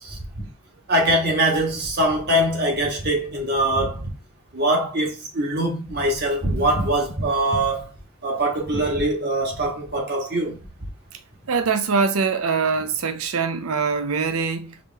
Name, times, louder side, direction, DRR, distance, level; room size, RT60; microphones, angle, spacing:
voice 1, 0.0-0.5 0.9-4.0 4.5-7.9 8.2-10.6, right 1 dB, 50° right, 1.5 m, -23 dB
voice 2, 11.5-14.8, right 5 dB, 80° right, 0.6 m, -23 dB
4.9 x 3.0 x 3.4 m
head